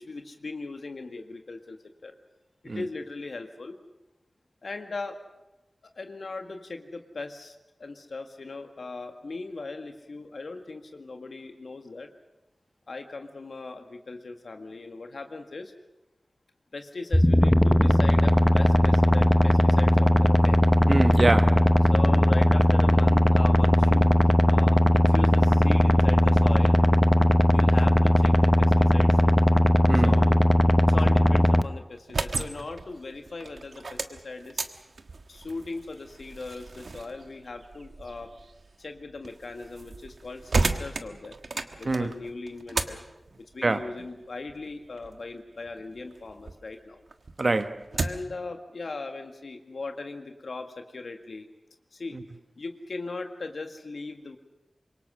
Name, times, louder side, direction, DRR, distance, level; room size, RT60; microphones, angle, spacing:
voice 1, 0.0-1.8 2.0-2.1 2.6-3.8 4.6-5.2 6.0-12.1 12.9-15.7 16.7-20.6 21.9-24.2 24.5-26.8 27.5-29.3 30.0-30.4 30.8-34.6 35.3-38.3 38.8-41.4 41.8-43.0 43.4-47.0 47.9-51.5 51.9-52.2 52.6-54.4, left 3 dB, 75° left, 1.9 m, -39 dB
sound 1, 17.1-31.6, left 1 dB, 5° left, 0.8 m, -19 dB
voice 2, 20.9-21.7 29.9-30.2 41.8-42.1 43.6-43.9 47.4-47.8 52.1-52.2, right 2 dB, 50° right, 1.3 m, -25 dB
sound 2, 31.9-46.6 47.0-48.4, right 3 dB, 75° right, 1.4 m, -35 dB
26.0 x 23.0 x 6.3 m
wide cardioid pair, 85°, 0 cm